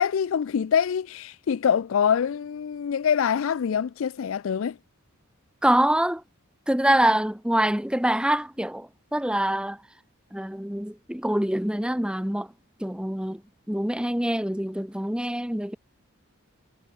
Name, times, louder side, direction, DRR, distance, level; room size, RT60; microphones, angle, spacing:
voice 1, 0.0-4.7, left 7 dB, 60° left, 0.4 m, -24 dB
voice 2, 5.6-6.2 6.7-9.8 10.3-12.5 12.8-13.4 13.7-15.8, right 1 dB, 5° right, 1.0 m, -25 dB
head